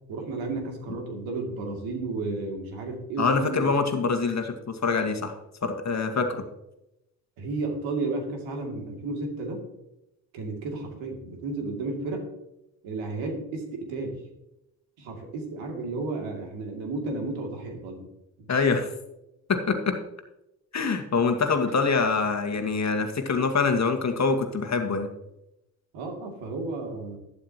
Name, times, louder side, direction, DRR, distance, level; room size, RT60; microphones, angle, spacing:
voice 1, 0.1-3.7 7.4-9.6 10.3-12.2 12.8-14.2 15.0-18.1 25.9-27.2, right 3 dB, 70° right, 2 dB, 2.7 m, -33 dB
voice 2, 3.2-5.3 5.6-6.4 18.5-18.9 19.5-20.0 20.7-25.1, left 4 dB, 35° left, 5 dB, 1.8 m, -25 dB
11.5 x 11.5 x 3.0 m, 0.88 s
hypercardioid pair, 55°, 49 cm